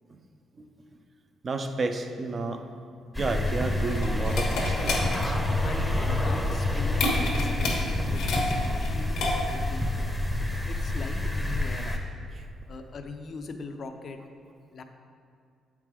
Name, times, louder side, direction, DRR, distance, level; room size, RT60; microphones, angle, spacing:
voice 1, 1.4-2.6 3.2-5.4 12.4-12.5, right 3 dB, 40° right, 6 dB, 0.5 m, -31 dB
sound 1, 3.2-12.0, left 1 dB, ahead, 0.7 m, -28 dB
sound 2, 3.5-9.7, left 2 dB, 85° left, 1.1 m, -31 dB
voice 2, 5.6-7.8 8.1-10.1 10.6-12.0 12.7-14.2 14.7-14.8, left 4 dB, 50° left, 6 dB, 0.5 m, -41 dB
7.9 x 4.7 x 3.7 m, 2.3 s
cardioid pair, 90°, 0 cm